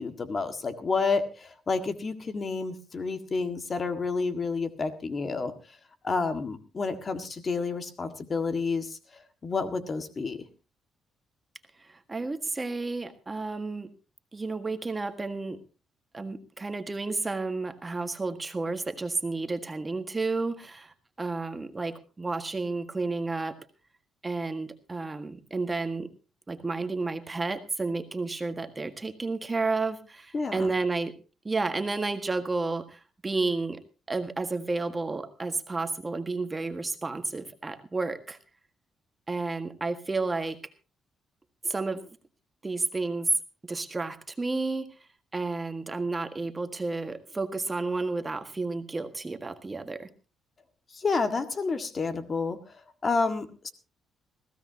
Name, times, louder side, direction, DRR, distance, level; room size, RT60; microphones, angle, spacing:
voice 1, 0.0-5.5 6.0-9.0 9.4-10.4 30.3-30.7 50.9-52.7 53.0-53.7, left 4 dB, 40° left, 8 dB, 1.8 m, -29 dB
voice 2, 11.8-13.9 14.3-15.6 16.1-23.6 24.2-26.1 26.5-31.1 31.4-33.8 34.1-38.4 39.3-40.6 41.6-42.0 42.6-43.3 43.7-44.9 45.3-50.1, right 3 dB, 20° right, 8 dB, 1.6 m, -31 dB
20.5 x 16.0 x 2.8 m, 0.31 s
cardioid pair, 90°, 0 cm